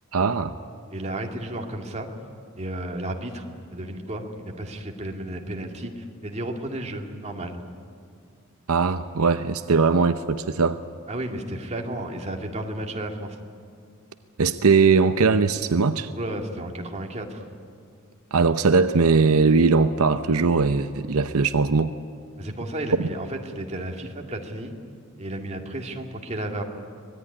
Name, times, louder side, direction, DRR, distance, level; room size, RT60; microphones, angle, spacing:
voice 1, 0.1-0.6 8.7-10.8 14.4-16.1 18.3-21.9, right 4 dB, 80° right, 10 dB, 0.7 m, -20 dB
voice 2, 0.9-2.1 2.6-7.6 11.1-13.4 16.1-17.4 22.4-24.7 25.2-26.6, right 1 dB, 30° right, 2 dB, 2.2 m, -33 dB
24.5 x 19.0 x 9.8 m, 2.2 s
head